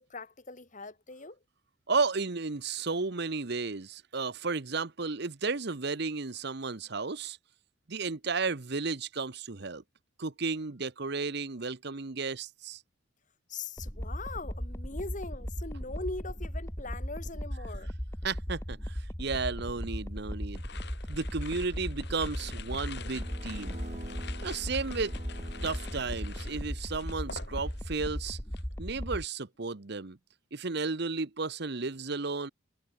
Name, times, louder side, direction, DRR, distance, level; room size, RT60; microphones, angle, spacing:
voice 1, 0.0-1.4 13.5-17.9, left 3 dB, 40° left, 2.2 m, -41 dB
voice 2, 1.9-7.4 7.9-9.8 10.2-12.8 18.2-20.6 21.1-23.8 24.4-25.1 25.6-28.4 28.8-30.2 30.5-32.5, right 4 dB, 55° right, 1.0 m, -33 dB
sound 1, 13.8-29.2, equal, 15° left, 2.5 m, -37 dB
sound 2, 20.6-28.0 28.3-28.7, left 6 dB, 55° left, 3.9 m, -48 dB
sound 3, 22.4-27.0, right 1 dB, 35° right, 2.5 m, -48 dB
head